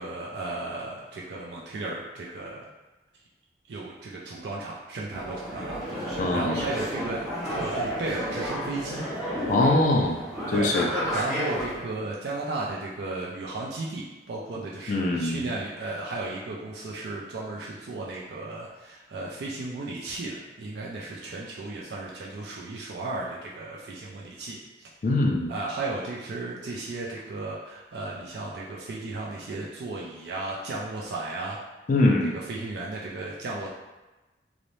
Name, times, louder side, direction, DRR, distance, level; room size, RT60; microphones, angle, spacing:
voice 1, 0.0-2.7 3.7-9.1 10.5-24.9 25.5-31.6 32.3-33.7, right 2 dB, 65° right, -4 dB, 0.4 m, -35 dB
sound 1, 5.1-11.8, equal, ahead, 0.6 m, -32 dB
voice 2, 6.2-6.6 9.5-10.2 10.5-10.9 14.9-15.5 25.0-25.5 31.9-32.3, left 2 dB, 45° left, 0 dB, 0.3 m, -22 dB
2.6 x 2.0 x 3.0 m, 1.1 s
head